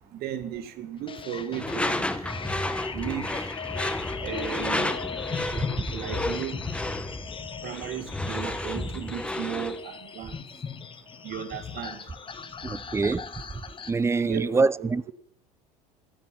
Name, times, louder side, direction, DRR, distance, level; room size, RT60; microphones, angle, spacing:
voice 1, 0.2-2.1 2.9-3.5 4.2-4.9 5.9-6.6 7.6-10.4 11.2-12.0 14.2-14.9, right 10 dB, 50° right, 2.1 m, -35 dB
sound 1, 1.1-13.9, left 6 dB, 25° left, 1.5 m, -38 dB
Door / Screech, 1.6-9.8, left 1 dB, 5° left, 1.2 m, -32 dB
voice 2, 12.6-13.3 13.9-15.1, right 4 dB, 15° right, 0.5 m, -25 dB
15.0 x 10.5 x 9.2 m
figure-of-eight pair, 70°, 20 cm